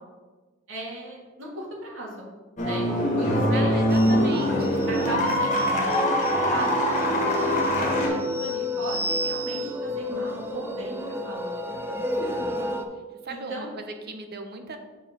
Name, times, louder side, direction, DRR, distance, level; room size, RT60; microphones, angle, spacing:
voice 1, 0.7-2.3 2.6-2.9 3.1-4.0 4.9-12.7 13.3-13.7, right 1 dB, 70° right, -4 dB, 2.6 m, -37 dB
sound 1, 2.6-8.1, equal, 35° left, 1.7 m, -23 dB
voice 2, 3.5-4.9 13.2-14.8, right 3 dB, 50° right, 5 dB, 0.9 m, -38 dB
sound 2, 3.9-12.9, equal, 10° right, 0.6 m, -31 dB
7.2 x 4.8 x 5.4 m, 1.3 s
head